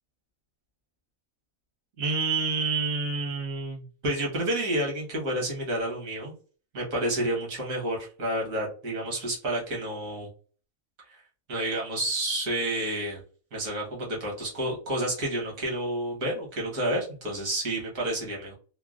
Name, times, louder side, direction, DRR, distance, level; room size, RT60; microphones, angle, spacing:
voice 1, 2.0-6.3 6.7-10.3 11.1-11.2 11.5-13.2 13.5-18.5, right 1 dB, 75° right, -2 dB, 1.7 m, -29 dB
3.7 x 2.2 x 2.4 m, 0.39 s
omnidirectional pair, 1.4 m